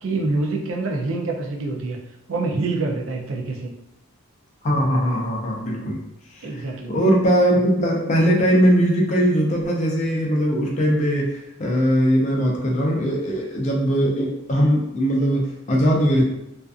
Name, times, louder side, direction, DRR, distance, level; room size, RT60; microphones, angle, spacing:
voice 1, 0.0-2.0 2.3-3.7 6.4-7.0, right 3 dB, 60° right, 1 dB, 0.4 m, -26 dB
voice 2, 4.6-6.0 6.4-6.6 6.9-16.2, equal, 30° left, -1 dB, 0.4 m, -20 dB
2.5 x 2.4 x 2.3 m, 0.86 s
head